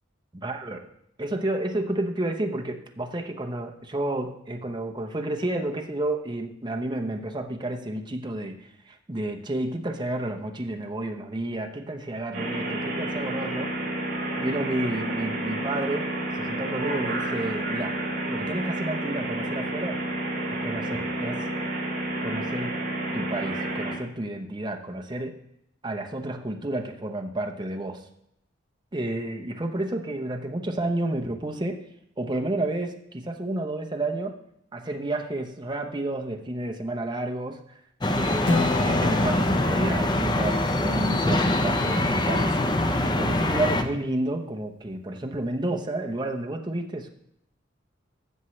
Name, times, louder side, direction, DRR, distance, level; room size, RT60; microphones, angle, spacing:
voice 1, 0.3-0.8 1.2-13.7 14.4-18.0 18.3-20.0 20.5-21.5 22.2-22.8 23.1-25.4 25.8-28.0 28.9-31.8 32.2-34.4 34.7-37.6 38.2-42.9 43.2-47.1, right 1 dB, 25° right, 3 dB, 0.9 m, -31 dB
sound 1, 12.3-23.9, right 1 dB, 55° right, 3.4 m, -30 dB
sound 2, 38.0-43.8, left 1 dB, 25° left, 0.7 m, -24 dB
Acoustic guitar / Strum, 38.5-42.0, left 3 dB, 70° left, 1.3 m, -32 dB
13.5 x 7.3 x 3.2 m, 0.75 s
head